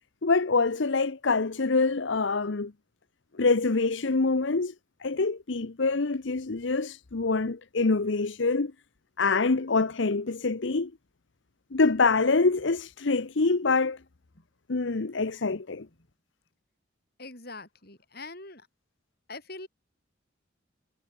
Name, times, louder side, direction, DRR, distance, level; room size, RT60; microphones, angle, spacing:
voice 1, 0.2-2.7 3.4-4.7 5.0-8.7 9.2-10.9 11.7-14.0 14.7-15.9, left 3 dB, 65° left, 0.8 m, -25 dB
voice 2, 17.2-18.7 19.3-19.7, left 3 dB, 50° left, 7.3 m, -43 dB
head